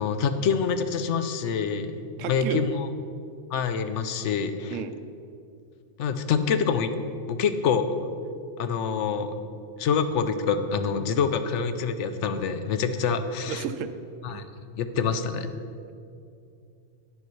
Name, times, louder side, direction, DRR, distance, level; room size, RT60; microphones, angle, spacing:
voice 1, 0.0-2.0 2.3-2.9 3.5-4.8 6.0-6.9 7.3-7.9 8.6-9.3 9.8-13.6 14.2-14.4 14.8-15.5, left 6 dB, 75° left, 10 dB, 0.9 m, -26 dB
voice 2, 2.2-2.6 4.7-5.0 13.5-13.9 14.3-14.5, right 8 dB, 90° right, 11 dB, 0.9 m, -32 dB
9.9 x 5.6 x 6.0 m, 2.5 s
omnidirectional pair, 1.3 m